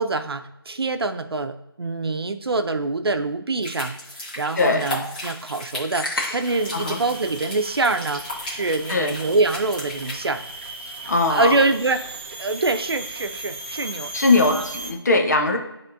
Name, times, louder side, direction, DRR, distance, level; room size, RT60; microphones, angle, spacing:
voice 1, 0.0-10.4 11.3-12.1 12.4-14.1 14.5-14.6, right 3 dB, 75° right, 9 dB, 0.7 m, -25 dB
sound 1, 3.6-10.3, left 1 dB, 20° left, 1.5 m, -36 dB
voice 2, 4.6-4.9 6.7-7.0 8.9-9.2 11.1-11.6 14.1-15.6, left 3 dB, 45° left, 4 dB, 1.0 m, -20 dB
sound 2, 5.9-6.7, left 1 dB, 65° left, 1.8 m, -29 dB
sound 3, 6.4-14.9, right 2 dB, 25° right, 0.8 m, -37 dB
10.5 x 3.6 x 2.7 m, 0.92 s
figure-of-eight pair, 170°, 13 cm